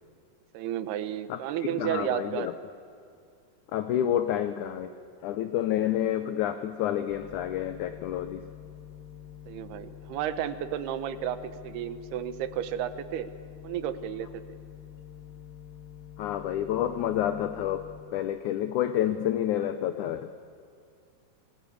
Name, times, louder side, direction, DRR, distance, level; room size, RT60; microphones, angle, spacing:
voice 1, 0.5-2.5 9.5-13.3 13.6-14.3, right 10 dB, 85° right, 12 dB, 3.0 m, -32 dB
voice 2, 1.3-2.5 3.7-4.9 5.2-8.4 16.2-17.8 18.1-20.3, left 11 dB, 80° left, 9 dB, 1.8 m, -29 dB
sound 1, 7.1-18.0, left 11 dB, 40° left, 4.6 m, -47 dB
28.0 x 20.5 x 8.6 m, 2.3 s
omnidirectional pair, 4.5 m